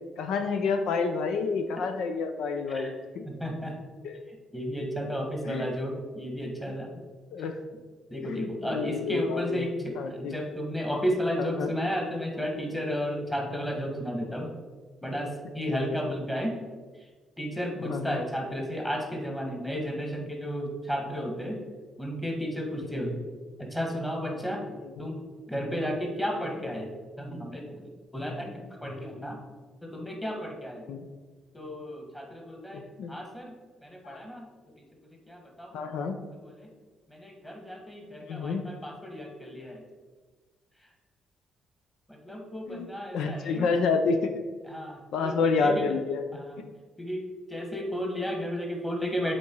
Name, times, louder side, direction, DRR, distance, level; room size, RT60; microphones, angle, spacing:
voice 1, 0.2-3.2 4.0-4.2 5.5-5.6 7.3-7.6 8.2-9.7 10.0-10.4 11.4-11.7 15.7-15.8 17.9-18.2 23.0-23.1 25.0-25.1 30.9-31.1 32.7-33.1 34.0-34.2 35.7-36.2 38.2-38.7 42.7-42.9 43.1-44.3 45.1-46.2 46.6-46.7, left 4 dB, 80° left, 7 dB, 0.6 m, -29 dB
voice 2, 3.3-3.8 4.3-6.9 7.4-7.5 8.1-14.5 15.0-16.6 17.4-21.6 22.0-23.2 23.6-25.2 25.5-26.9 27.2-29.4 29.8-30.8 31.5-32.8 33.1-33.5 33.8-34.5 35.3-35.7 36.4-36.7 37.1-39.8 42.1-43.9 44.6-45.9 46.3-46.6 47.0-47.2 47.5-49.4, equal, 10° left, 1 dB, 1.8 m, -33 dB
7.2 x 4.3 x 4.6 m, 1.4 s
cardioid pair, 90°, 0 cm